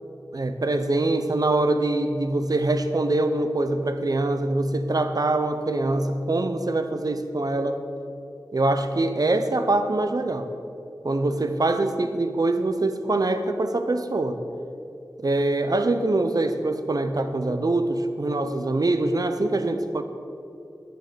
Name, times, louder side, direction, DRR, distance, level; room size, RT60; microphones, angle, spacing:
voice 1, 0.3-7.8 8.5-10.5 11.0-14.4 15.2-20.0, right 2 dB, 55° right, 8 dB, 0.7 m, -24 dB
9.4 x 6.8 x 6.2 m, 2.6 s
cardioid pair, 40°, 8 cm